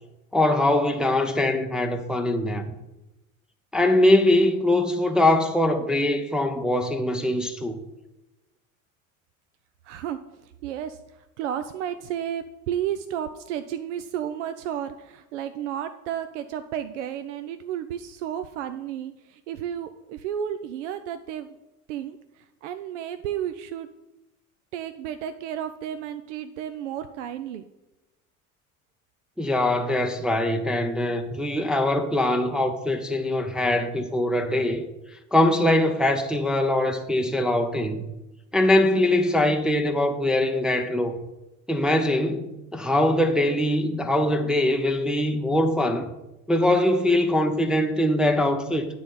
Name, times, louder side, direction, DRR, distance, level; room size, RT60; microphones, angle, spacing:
voice 1, 0.3-2.7 3.7-7.8 29.4-34.9 35.3-38.1 38.5-41.2 41.7-46.1 46.5-48.9, left 1 dB, ahead, 0.5 m, -22 dB
voice 2, 9.8-21.6 21.9-23.9 24.7-27.6, right 10 dB, 60° right, 0.6 m, -32 dB
9.6 x 4.1 x 6.9 m
figure-of-eight pair, 65°, 42 cm